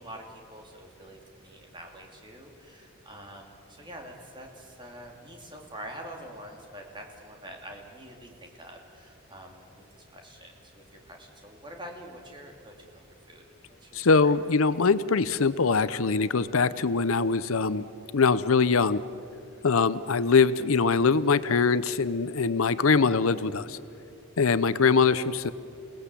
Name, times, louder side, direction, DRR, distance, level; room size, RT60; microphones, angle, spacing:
voice 1, 0.0-13.4 13.8-14.3, right 1 dB, 20° right, 1 dB, 2.8 m, -46 dB
voice 2, 13.9-17.8 18.1-19.0 19.6-23.8 24.4-25.5, left 4 dB, 75° left, 15 dB, 0.7 m, -23 dB
28.5 x 18.5 x 8.4 m, 2.6 s
head